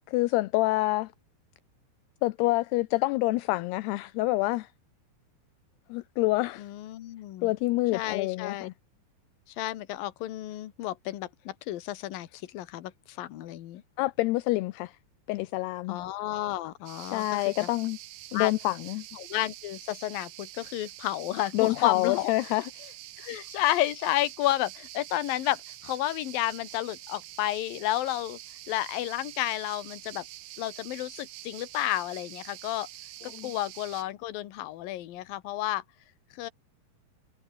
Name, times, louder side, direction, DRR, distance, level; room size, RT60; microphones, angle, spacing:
voice 1, 0.1-1.1 2.2-4.7 5.9-6.7 7.4-8.7 14.0-15.0 15.3-16.0 17.0-18.0 18.3-19.0 21.5-23.3 33.3-33.5, left 20 dB, 80° left, 2.5 m, -27 dB
voice 2, 6.6-7.5 7.9-8.7 9.5-13.8 15.9-17.7 18.3-18.5 19.2-22.3 23.2-28.4 28.7-30.2 30.6-32.9 33.4-35.8 36.3-36.5, left 14 dB, 65° left, 2.8 m, -31 dB
sound 1, 16.9-34.0, right 15 dB, 70° right, 2.7 m, -46 dB
omnidirectional pair, 5.1 m